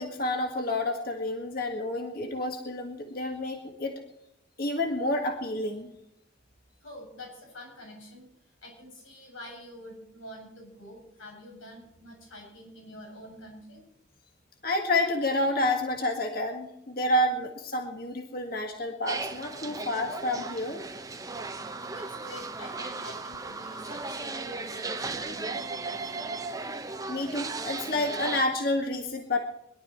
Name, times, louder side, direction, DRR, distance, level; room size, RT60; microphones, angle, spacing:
voice 1, 0.0-4.0 4.6-5.9 14.6-20.8 27.1-29.4, left 1 dB, 50° left, 3 dB, 1.8 m, -29 dB
voice 2, 6.8-13.8 21.9-25.7, left 1 dB, 85° left, 0 dB, 7.8 m, -46 dB
sound 1, 19.1-28.4, right 3 dB, 15° right, 0.9 m, -36 dB
22.0 x 12.0 x 4.3 m, 0.79 s
head